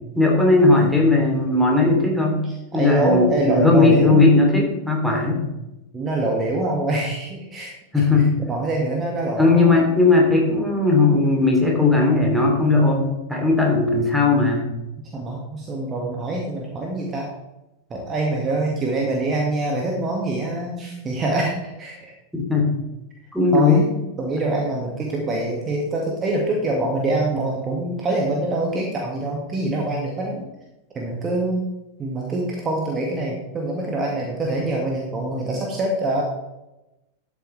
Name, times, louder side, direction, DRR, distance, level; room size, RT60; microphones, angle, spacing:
voice 1, 0.1-2.4 2.7-5.4 7.9-8.3 9.4-14.6 22.3-22.7 23.3-23.9, left 3 dB, ahead, -1 dB, 2.9 m, -17 dB
voice 2, 2.4-4.2 5.1-5.3 5.9-7.7 8.5-9.7 15.1-17.3 17.9-22.1 23.5-23.9 24.2-30.4 30.9-31.7 32.0-36.2, right 2 dB, 25° right, -1 dB, 1.8 m, -25 dB
12.5 x 8.4 x 3.3 m, 0.96 s
figure-of-eight pair, 90°, 0 cm